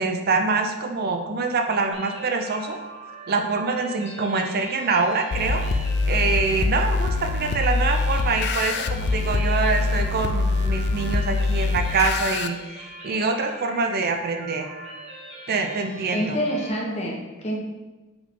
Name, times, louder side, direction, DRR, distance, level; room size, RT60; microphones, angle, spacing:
voice 1, 0.0-2.8 3.3-5.6 6.1-14.7 15.5-16.4, right 4 dB, 45° right, 5 dB, 0.5 m, -25 dB
sound 1, 1.9-16.7, right 1 dB, 30° right, 1.2 m, -41 dB
sound 2, 5.3-12.5, left 3 dB, 50° left, 0.4 m, -24 dB
voice 2, 16.1-17.6, equal, 30° left, -2 dB, 1.2 m, -27 dB
7.8 x 3.8 x 3.7 m, 1.1 s
head